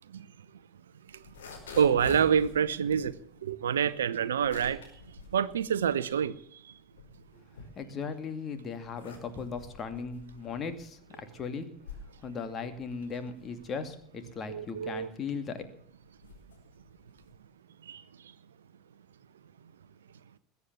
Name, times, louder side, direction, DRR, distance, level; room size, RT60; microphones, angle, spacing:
sound 1, 1.1-6.4 6.8-8.2 8.7-17.4, left 4 dB, 70° left, 5.2 m, -48 dB
voice 1, 1.8-3.1 3.4-4.8 5.3-6.3 14.5-15.1 17.9-18.0, right 8 dB, 70° right, 0.8 m, -26 dB
voice 2, 7.8-11.7 12.2-15.6, left 5 dB, 30° left, 2.6 m, -37 dB
21.0 x 8.3 x 7.3 m
figure-of-eight pair, 75°, 0 cm